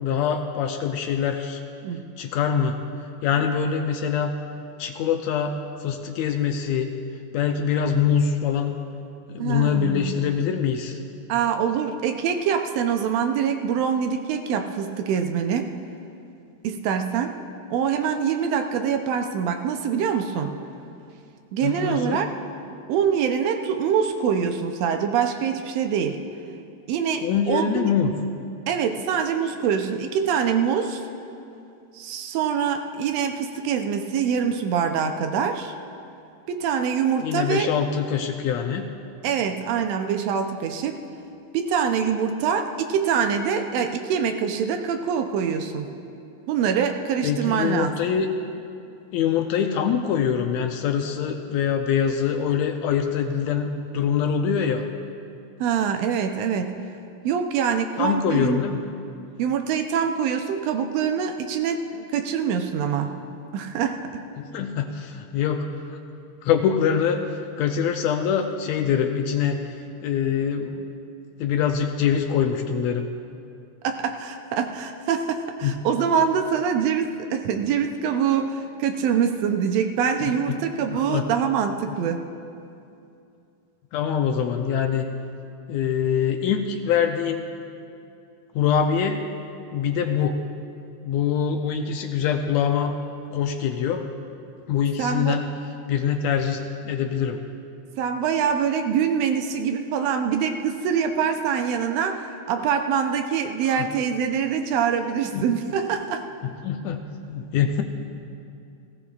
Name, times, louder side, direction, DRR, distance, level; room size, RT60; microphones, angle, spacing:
voice 1, 0.0-1.6 2.2-2.8 3.2-4.3 4.8-6.9 7.3-8.7 9.3-11.0 21.6-22.3 27.2-28.1 37.2-38.9 47.2-48.3 49.1-54.8 58.0-58.8 64.4-66.0 66.4-70.9 71.4-73.1 75.6-75.8 80.2-80.6 80.9-81.3 81.9-82.0 83.9-85.1 85.7-87.4 88.5-89.2 89.7-90.4 91.0-92.9 93.3-94.1 94.7-95.5 95.9-97.4 103.6-103.9 105.3-105.5 106.4-107.0 107.3-107.8, left 7 dB, 85° left, 4 dB, 1.6 m, -24 dB
voice 2, 9.4-10.1 11.3-15.7 16.6-17.3 17.7-20.6 21.5-22.3 22.9-26.2 26.9-27.9 28.7-31.0 31.9-35.7 36.5-37.7 39.2-41.0 41.5-45.9 46.5-47.9 55.6-56.7 57.2-58.6 59.4-63.1 63.5-64.2 73.8-82.2 95.0-95.4 98.0-106.2, right 7 dB, 85° right, 5 dB, 1.4 m, -24 dB
20.0 x 15.5 x 2.4 m, 2.6 s
omnidirectional pair, 3.7 m